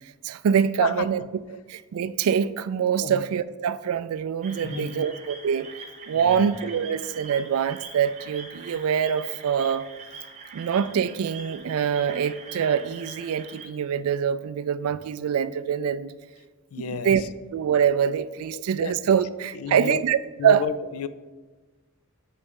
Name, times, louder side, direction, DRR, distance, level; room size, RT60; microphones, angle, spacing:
voice 1, 0.2-1.2 1.7-5.7 6.1-9.9 10.5-16.1 16.8-17.2 17.5-20.2 20.4-20.6, right 8 dB, 85° right, 0.3 m, -24 dB
voice 2, 0.8-1.3 3.0-3.2 4.6-5.1 6.1-6.5 16.7-17.3 18.5-18.9 19.5-20.0 20.4-21.1, left 7 dB, 80° left, 0.4 m, -32 dB
sound 1, 4.4-13.7, right 4 dB, 30° right, 0.8 m, -43 dB
8.0 x 3.3 x 5.2 m
head